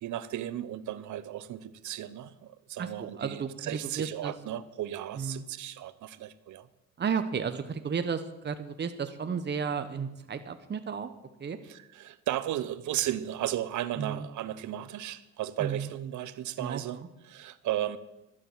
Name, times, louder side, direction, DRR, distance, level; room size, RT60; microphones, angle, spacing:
voice 1, 0.0-6.7 11.6-18.0, right 12 dB, 75° right, 15 dB, 0.9 m, -35 dB
voice 2, 2.8-4.3 5.2-5.4 7.0-11.1 11.4-11.6 14.0-14.2 15.6-15.8 16.6-17.1, right 6 dB, 35° right, 9 dB, 1.1 m, -33 dB
13.0 x 10.0 x 8.0 m, 0.93 s
cardioid pair, 90°, 30 cm